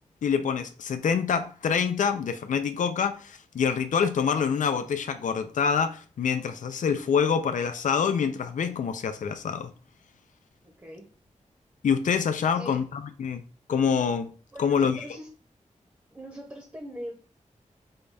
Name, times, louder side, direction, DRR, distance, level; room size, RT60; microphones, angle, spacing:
voice 1, 0.2-9.7 11.8-13.4 13.7-14.3 14.6-15.0, left 6 dB, 75° left, 0.4 m, -26 dB
voice 2, 10.6-11.1 12.5-12.8 14.5-15.3 16.1-17.1, equal, 15° right, 0.8 m, -41 dB
5.1 x 2.2 x 4.0 m
wide cardioid pair, 120°, 13 cm